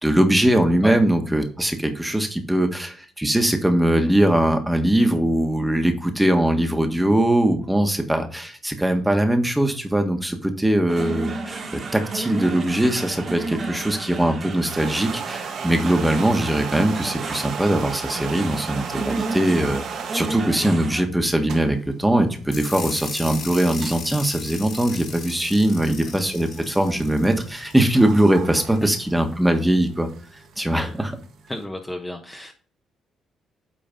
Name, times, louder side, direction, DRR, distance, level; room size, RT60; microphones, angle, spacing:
voice 1, 0.0-19.8 20.1-30.1 30.6-31.1, right 1 dB, 5° right, 6 dB, 1.5 m, -21 dB
sound 1, 10.9-21.0, right 3 dB, 45° right, 1.7 m, -32 dB
sound 2, 14.5-20.6 21.2-31.6, right 6 dB, 70° right, 1.5 m, -37 dB
sound 3, 22.5-28.3, left 5 dB, 55° left, 2.9 m, -37 dB
voice 2, 31.5-32.5, left 1 dB, 15° left, 4 dB, 1.1 m, -33 dB
9.1 x 3.8 x 5.2 m, 0.42 s
cardioid pair, 90°, 0 cm